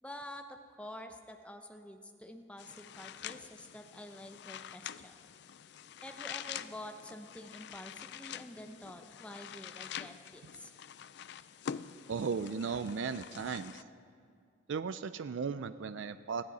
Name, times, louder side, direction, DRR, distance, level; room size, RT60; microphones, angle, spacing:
voice 1, 0.0-5.2 6.0-10.7, left 1 dB, 5° left, 5 dB, 0.7 m, -48 dB
sound 1, 2.6-13.8, left 9 dB, 55° left, 0.4 m, -46 dB
voice 2, 12.1-13.8 14.7-16.4, right 5 dB, 70° right, 12 dB, 0.4 m, -36 dB
20.5 x 15.0 x 4.2 m, 2.3 s
head